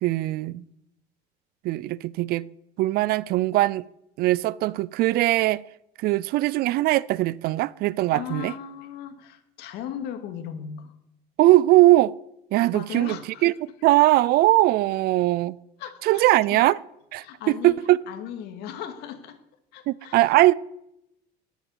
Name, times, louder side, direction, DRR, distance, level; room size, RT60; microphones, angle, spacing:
voice 1, 0.0-0.7 1.6-2.5 2.8-3.9 4.2-5.6 6.0-8.5 11.4-12.1 12.5-15.6 16.0-16.8 17.1-18.0 19.9-20.5, right 17 dB, 60° right, 0.5 m, -20 dB
voice 2, 8.1-10.9 12.7-13.4 15.8-16.7 17.2-17.7 18.1-19.4 19.7-20.2, left 9 dB, 65° left, 2.3 m, -37 dB
19.0 x 8.2 x 7.9 m
cardioid pair, 140°, 18 cm